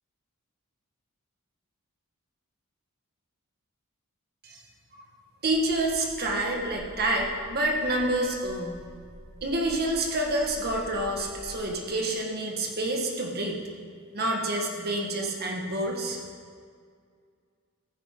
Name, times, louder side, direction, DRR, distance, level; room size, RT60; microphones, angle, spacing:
sound 1, 5.4-11.5, equal, 25° right, 2.3 m, -48 dB
voice 1, 5.4-8.8 9.4-13.6 14.1-16.2, right 1 dB, 50° right, 0 dB, 1.6 m, -28 dB
14.5 x 9.9 x 3.8 m, 2.1 s
head